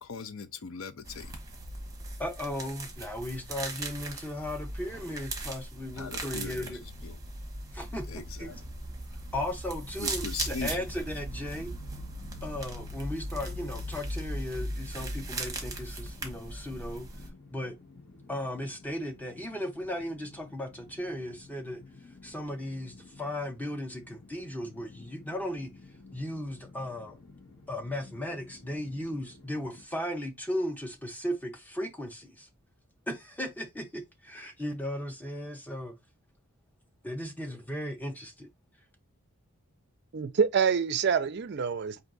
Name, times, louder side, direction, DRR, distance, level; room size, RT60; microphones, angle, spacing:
voice 1, 0.0-1.3 6.0-7.2 8.1-8.6 10.0-10.9, left 5 dB, 65° left, 0.5 m, -40 dB
sound 1, 1.0-17.3, right 2 dB, 15° right, 1.0 m, -38 dB
voice 2, 2.2-6.8 7.7-8.5 9.3-11.7 12.4-17.1 17.5-17.7 18.3-21.8 22.2-25.7 26.1-27.2 27.7-32.5 33.1-35.9 37.0-38.5, left 1 dB, 10° left, 0.7 m, -36 dB
sound 2, 10.4-29.8, left 3 dB, 40° left, 1.0 m, -53 dB
voice 3, 40.1-42.0, right 6 dB, 50° right, 0.4 m, -26 dB
4.4 x 2.6 x 3.9 m
head